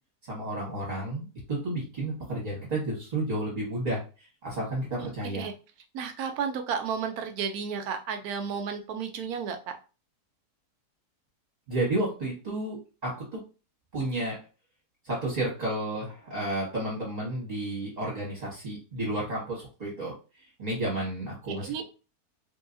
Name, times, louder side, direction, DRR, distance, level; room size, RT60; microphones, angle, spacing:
voice 1, 0.2-4.0 4.4-5.5 11.7-13.4 13.9-14.4 15.0-20.2 20.6-21.8, right 1 dB, 30° right, -5 dB, 1.1 m, -31 dB
voice 2, 5.9-9.8 21.5-21.8, right 6 dB, 75° right, 6 dB, 1.0 m, -32 dB
3.2 x 2.7 x 2.5 m, 0.32 s
omnidirectional pair, 1.7 m